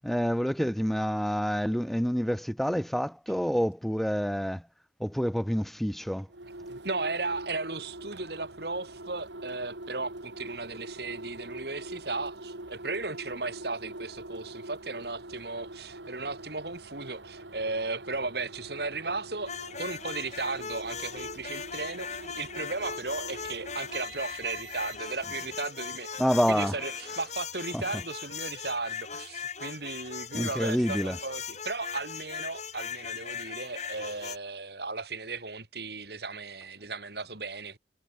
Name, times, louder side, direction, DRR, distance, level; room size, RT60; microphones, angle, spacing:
voice 1, 0.0-4.6 5.0-6.3 26.2-26.8 27.7-27.8 30.3-31.2, equal, ahead, 0.7 m, -28 dB
sound 1, 6.3-25.3, right 2 dB, 75° right, 3.6 m, -44 dB
voice 2, 6.7-19.5 19.8-26.2 26.5-37.8, right 3 dB, 60° right, 3.2 m, -36 dB
sound 2, 19.5-34.4, left 6 dB, 40° left, 2.8 m, -39 dB
head